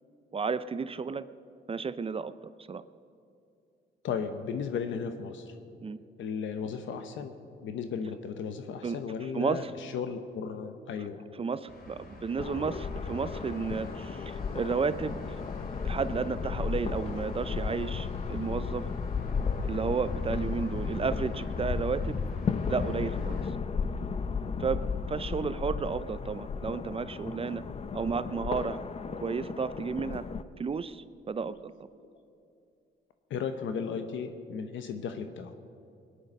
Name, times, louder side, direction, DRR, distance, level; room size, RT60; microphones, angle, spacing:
voice 1, 0.3-1.2 1.7-2.3 2.7-2.8 5.8-6.0 8.8-9.0 9.3-9.7 11.0-11.1 11.4-15.4 15.8-18.9 19.6-22.2 22.7-23.4 24.6-27.6 27.9-28.8 29.2-30.2 30.6-31.7, right 5 dB, 30° right, 14 dB, 0.5 m, -32 dB
voice 2, 4.0-5.5 6.2-7.3 7.6-11.2 32.0-32.1 33.3-35.5, left 6 dB, 75° left, 8 dB, 0.9 m, -35 dB
sound 1, 11.7-23.5, left 2 dB, 50° left, 2.5 m, -48 dB
sound 2, 12.4-30.4, left 5 dB, 30° left, 0.6 m, -34 dB
20.5 x 10.5 x 5.4 m, 2.6 s
cardioid pair, 90°, 20 cm